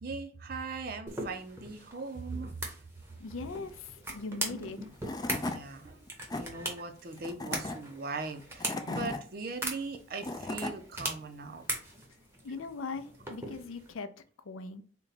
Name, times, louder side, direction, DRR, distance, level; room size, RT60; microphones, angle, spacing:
voice 1, 0.0-2.6 5.4-6.1 6.4-11.6, right 3 dB, 45° right, 0.5 m, -40 dB
sound 1, 1.1-13.9, right 1 dB, 10° right, 0.8 m, -41 dB
voice 2, 3.2-4.8 12.4-14.1 14.5-14.8, left 4 dB, 80° left, 0.5 m, -40 dB
Tools / Wood, 4.7-4.8 5.0-5.6 6.1-6.4 7.2-7.8 8.4-9.2 9.9-10.7, left 2 dB, 20° left, 0.3 m, -36 dB
4.0 x 2.2 x 4.0 m
head